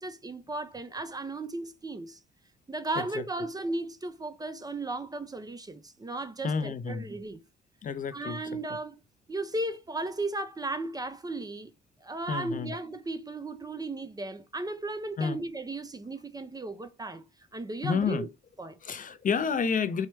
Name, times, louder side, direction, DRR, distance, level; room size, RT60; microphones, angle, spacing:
voice 1, 0.0-2.2 2.7-7.4 8.1-8.9 9.3-11.7 12.0-17.2 17.5-18.3 18.6-18.8, right 2 dB, 20° right, 0.6 m, -35 dB
voice 2, 2.9-3.2 6.4-7.1 7.8-8.4 12.3-12.7 15.2-15.4 17.8-18.3 18.8-20.1, left 6 dB, 40° left, 0.6 m, -30 dB
4.5 x 2.2 x 4.5 m
cardioid pair, 90°, 20 cm